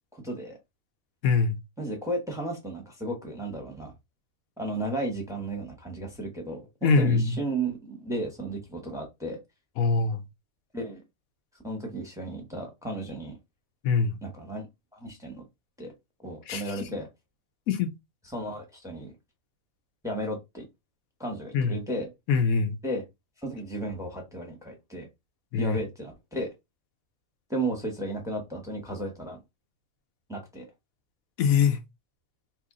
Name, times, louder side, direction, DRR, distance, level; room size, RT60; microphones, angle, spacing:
voice 1, 0.1-0.6 1.8-3.9 4.6-9.4 10.7-11.0 11.6-13.4 14.2-14.7 14.9-15.4 15.8-15.9 16.2-17.1 18.2-19.1 20.0-20.6 21.2-22.1 22.8-23.0 23.4-25.1 25.5-26.5 27.5-29.4 30.3-30.7, right 1 dB, 5° right, 0.9 m, -34 dB
voice 2, 1.2-1.6 6.8-7.4 9.8-10.2 13.8-14.2 16.5-16.6 17.7-17.9 21.5-21.7 22.3-22.8 25.5-25.8 31.4-31.8, left 5 dB, 85° left, 1.1 m, -23 dB
3.0 x 2.6 x 3.6 m
omnidirectional pair, 1.4 m